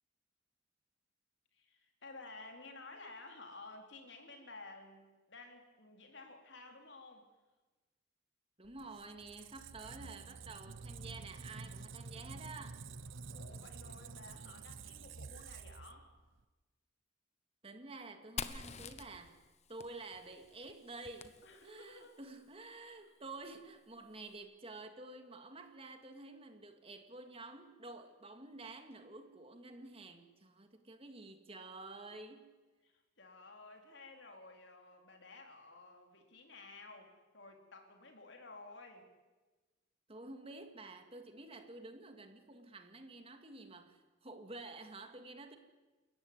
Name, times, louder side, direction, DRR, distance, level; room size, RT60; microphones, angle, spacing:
voice 1, 1.5-7.3 13.3-16.1 21.4-22.1 22.9-23.2 32.8-39.1, left 3 dB, 65° left, 3 dB, 4.1 m, -54 dB
voice 2, 8.6-12.8 17.6-19.3 19.7-32.5 40.1-45.6, right 2 dB, 30° right, 6 dB, 2.1 m, -50 dB
Squeak, 8.7-16.4, right 4 dB, 80° right, 0.8 m, -49 dB
Fire, 18.4-22.0, left 6 dB, 35° left, 1.0 m, -47 dB
28.5 x 15.0 x 9.7 m, 1.2 s
head